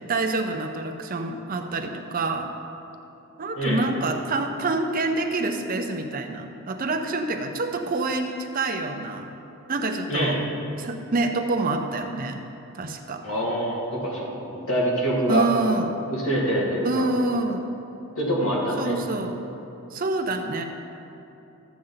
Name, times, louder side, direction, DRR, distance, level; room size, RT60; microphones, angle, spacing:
voice 1, 0.0-2.5 3.4-9.3 9.7-10.4 10.8-12.4 12.7-13.3 15.3-15.9 16.8-17.7 18.8-19.4 19.9-20.6, right 3 dB, 40° right, 5 dB, 0.6 m, -27 dB
voice 2, 13.2-15.5 16.1-17.1 18.2-19.0, equal, 65° left, -4 dB, 2.2 m, -25 dB
13.5 x 7.6 x 4.0 m, 2.9 s
head